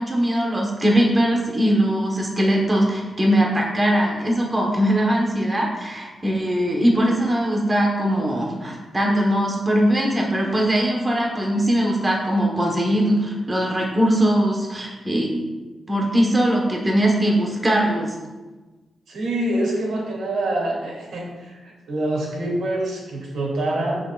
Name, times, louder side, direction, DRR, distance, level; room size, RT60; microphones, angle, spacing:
voice 1, 0.0-15.3 15.9-18.1, equal, 15° right, -1 dB, 1.2 m, -20 dB
voice 2, 19.1-24.1, right 1 dB, 90° right, -3 dB, 2.7 m, -26 dB
14.0 x 6.0 x 2.5 m, 1.2 s
wide cardioid pair, 175°, 0 cm